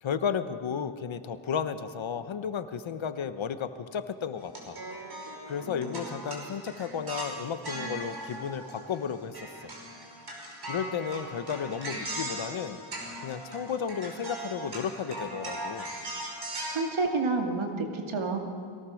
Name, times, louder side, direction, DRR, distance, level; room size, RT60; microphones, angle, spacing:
voice 1, 0.0-4.8 5.5-9.5 10.7-12.8 13.2-15.9, left 7 dB, 70° left, 11 dB, 1.2 m, -33 dB
sound 1, 4.4-9.1 9.3-16.7, right 1 dB, 50° right, 5.1 m, -39 dB
voice 2, 16.7-18.4, right 3 dB, 75° right, 3 dB, 2.5 m, -29 dB
22.5 x 17.5 x 6.5 m, 2.2 s
cardioid pair, 85°, 49 cm